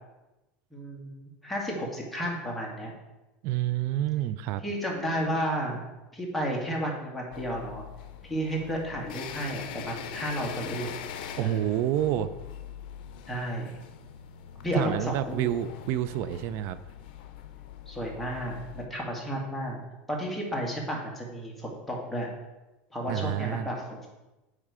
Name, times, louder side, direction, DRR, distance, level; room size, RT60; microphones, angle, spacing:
voice 1, 0.7-2.9 4.6-5.8 6.1-7.8 8.2-10.9 11.4-11.8 13.3-13.7 14.6-15.5 17.9-19.8 20.1-22.3 22.9-24.1, equal, ahead, -3 dB, 1.8 m, -32 dB
voice 2, 3.4-4.6 11.4-12.3 14.7-16.8 23.1-23.7, right 12 dB, 60° right, 13 dB, 0.3 m, -28 dB
sound 1, 7.3-18.9, left 8 dB, 80° left, 0.5 m, -42 dB
8.7 x 3.2 x 4.8 m, 1.0 s
supercardioid pair, 125°, 5 cm